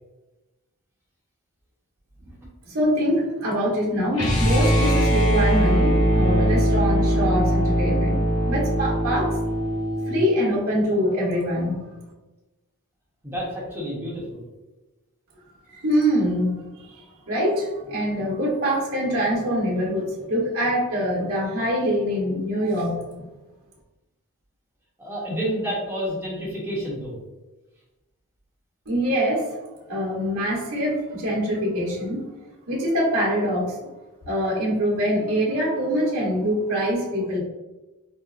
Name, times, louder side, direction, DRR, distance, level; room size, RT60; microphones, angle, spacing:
voice 1, 2.7-9.3 10.1-11.8 15.7-23.1 28.9-29.5 29.9-32.2 32.7-33.8 34.2-37.4, equal, 70° right, -7 dB, 1.1 m, -24 dB
sound 1, 4.1-10.2, equal, 75° left, 1.2 m, -21 dB
voice 2, 13.2-14.4 25.0-27.1, equal, 10° right, -6 dB, 1.0 m, -29 dB
4.3 x 2.1 x 2.5 m, 1.1 s
head